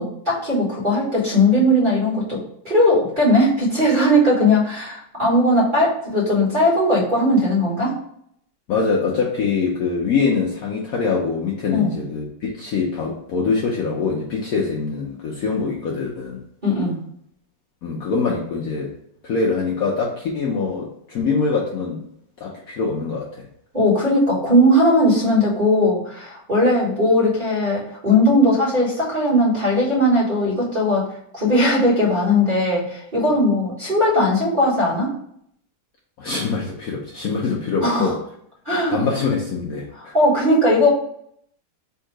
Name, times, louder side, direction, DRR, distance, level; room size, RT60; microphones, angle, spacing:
voice 1, 0.0-2.4 2.6-7.9 11.7-11.9 16.6-17.0 23.7-31.1 31.3-35.1 37.8-38.1 38.7-39.0 40.1-40.9, left 1 dB, 25° right, -8 dB, 1.8 m, -18 dB
voice 2, 8.7-16.4 17.8-18.9 19.2-22.1 22.4-23.5 36.2-38.2 38.9-40.1, left 4 dB, 65° left, -2 dB, 1.0 m, -24 dB
3.6 x 2.7 x 4.6 m, 0.69 s
omnidirectional pair, 2.0 m